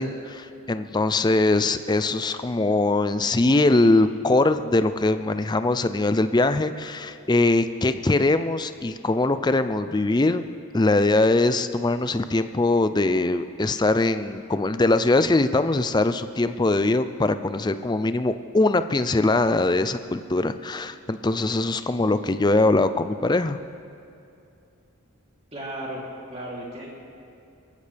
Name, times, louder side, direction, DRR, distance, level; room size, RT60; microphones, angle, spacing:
voice 1, 0.0-10.4 10.7-23.6, left 2 dB, 20° left, 11 dB, 0.4 m, -22 dB
voice 2, 25.5-26.0 26.3-26.9, right 1 dB, 30° right, -4 dB, 3.2 m, -34 dB
23.0 x 15.0 x 3.4 m, 2.6 s
head